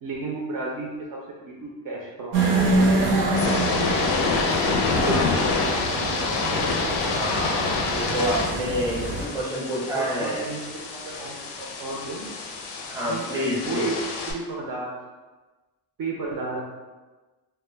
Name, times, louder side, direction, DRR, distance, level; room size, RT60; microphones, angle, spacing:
voice 1, 0.0-2.6 3.3-3.7 4.7-6.2 9.9-12.3 13.1-14.0 14.3-14.9 16.0-16.7, right 3 dB, 55° right, -3 dB, 0.5 m, -33 dB
sound 1, 2.3-9.3, right 2 dB, 90° right, 0.7 m, -26 dB
sound 2, 3.2-14.3, left 4 dB, 85° left, 0.5 m, -27 dB
voice 2, 4.5-5.4 7.0-10.5 12.9-13.9, equal, 10° right, -6 dB, 0.6 m, -29 dB
2.1 x 2.1 x 3.2 m, 1.2 s
wide cardioid pair, 165°, 42 cm